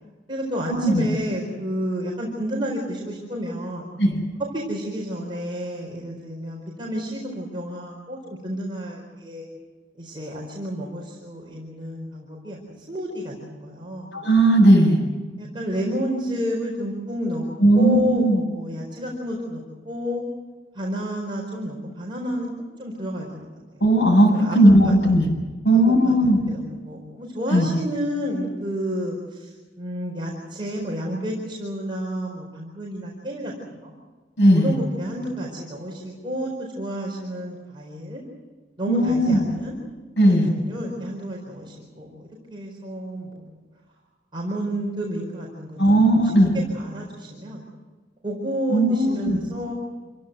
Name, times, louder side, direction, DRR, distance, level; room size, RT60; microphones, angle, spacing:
voice 1, 0.3-3.9 4.5-9.5 10.0-12.6 12.9-14.1 15.4-17.4 17.7-20.2 20.7-22.5 22.8-23.5 24.3-25.1 25.7-33.9 34.5-38.2 38.8-39.7 40.2-43.4 44.3-46.5 46.7-47.6 48.2-49.7, equal, 30° right, -3 dB, 4.7 m, -30 dB
voice 2, 14.1-15.0 17.6-18.4 23.8-25.3 25.6-26.4 27.5-27.7 34.4-34.8 38.9-39.4 40.2-40.5 45.8-46.5 48.7-49.4, right 1 dB, 90° left, -3 dB, 7.8 m, -17 dB
27.5 x 16.5 x 8.1 m, 1.3 s
head